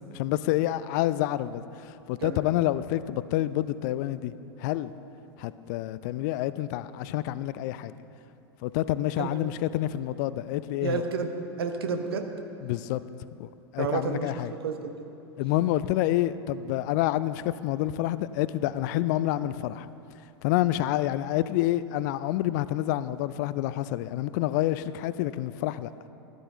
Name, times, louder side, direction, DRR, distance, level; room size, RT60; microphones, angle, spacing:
voice 1, 0.1-4.3 4.6-4.9 5.4-7.9 8.6-11.0 12.6-13.0 13.4-14.5 15.4-19.9 20.4-25.9, left 14 dB, 45° left, 15 dB, 0.4 m, -28 dB
voice 2, 10.8-11.3 11.6-12.3 13.8-14.9, right 5 dB, 65° right, 5 dB, 1.1 m, -30 dB
14.0 x 12.0 x 3.8 m, 2.9 s
figure-of-eight pair, 90°, 14 cm